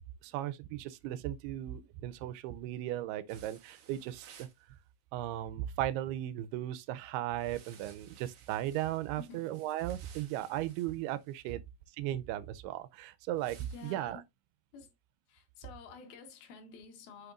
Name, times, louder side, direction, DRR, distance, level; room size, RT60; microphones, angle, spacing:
voice 1, 0.2-4.5 5.1-11.6 12.0-14.2, right 13 dB, 90° right, 2.6 m, -36 dB
sound 1, 3.3-4.6 7.3-11.4 13.4-13.9, right 7 dB, 70° right, 1.3 m, -58 dB
voice 2, 13.6-14.2 14.7-14.9 15.3-17.3, left 5 dB, 75° left, 3.2 m, -51 dB
8.0 x 6.5 x 2.5 m
omnidirectional pair, 4.5 m